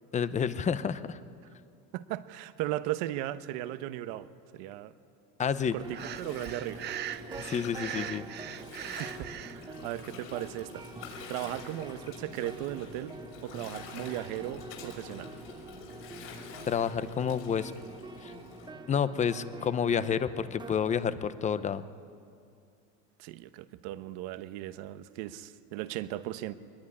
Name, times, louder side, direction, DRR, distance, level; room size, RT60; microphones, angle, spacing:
voice 1, 0.1-1.2 5.4-5.8 7.4-8.2 16.7-17.7 18.2-18.3 18.9-21.8, left 7 dB, 20° left, 13 dB, 0.8 m, -29 dB
voice 2, 1.9-4.3 4.5-4.9 5.7-6.8 9.0-10.8 11.3-15.3 23.2-26.5, right 14 dB, 75° right, 12 dB, 1.1 m, -37 dB
Gurgling, 5.4-18.7, left 4 dB, 70° left, 6.2 m, -47 dB
sound 1, 5.8-20.9, right 3 dB, 15° right, 1.1 m, -47 dB
Breathing, 5.9-9.6, right 12 dB, 35° right, 0.5 m, -40 dB
23.0 x 20.5 x 9.9 m, 2.4 s
cardioid pair, 145°, 32 cm